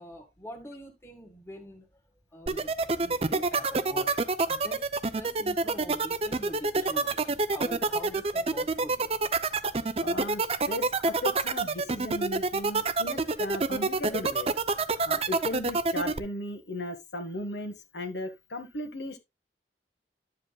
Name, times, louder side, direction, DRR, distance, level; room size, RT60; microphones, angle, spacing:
voice 1, 0.0-2.0 2.3-4.1 4.5-4.9 5.1-9.1, equal, 15° left, 1.8 m, -44 dB
sound 1, 2.5-16.2, right 3 dB, 35° right, 0.6 m, -26 dB
voice 2, 10.0-14.5 15.0-19.2, left 1 dB, 80° left, 1.6 m, -36 dB
11.0 x 7.6 x 2.3 m
head